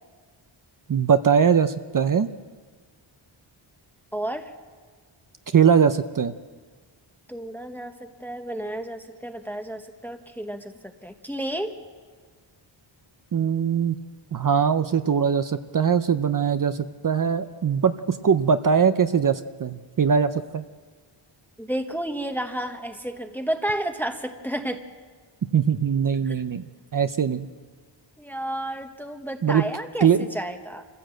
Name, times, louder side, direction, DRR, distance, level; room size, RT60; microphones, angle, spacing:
voice 1, 0.9-2.3 5.5-6.3 13.3-14.0 14.3-20.6 25.5-26.6 26.9-27.5 29.4-29.6 30.0-30.2, right 7 dB, 40° right, 10 dB, 0.6 m, -21 dB
voice 2, 4.1-4.5 7.3-11.7 21.6-24.8 26.2-26.4 28.2-30.9, right 1 dB, 5° left, 6 dB, 1.0 m, -31 dB
26.0 x 15.5 x 7.7 m, 1.5 s
wide cardioid pair, 155°, 49 cm